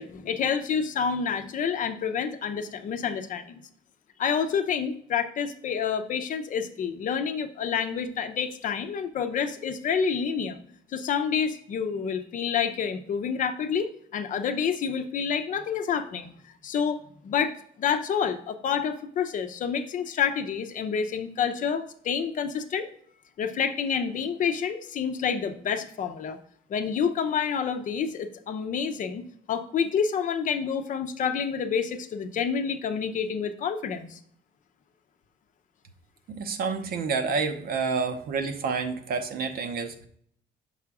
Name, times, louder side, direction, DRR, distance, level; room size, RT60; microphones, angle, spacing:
voice 1, 0.0-3.6 4.2-10.6 10.9-16.3 16.6-22.9 23.4-26.4 26.7-34.2, left 7 dB, 50° left, 8 dB, 0.6 m, -28 dB
voice 2, 36.4-40.0, right 5 dB, 65° right, 7 dB, 0.8 m, -29 dB
5.6 x 3.5 x 4.8 m, 0.65 s
cardioid pair, 110°, 17 cm